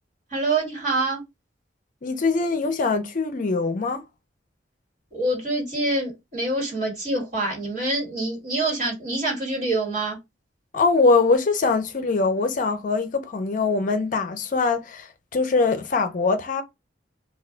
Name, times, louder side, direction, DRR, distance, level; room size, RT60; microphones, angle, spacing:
voice 1, 0.3-1.2 5.1-10.2, right 2 dB, 45° right, 1.6 m, -26 dB
voice 2, 2.0-4.0 10.7-16.6, left 4 dB, 45° left, 0.5 m, -22 dB
2.3 x 2.2 x 3.7 m
head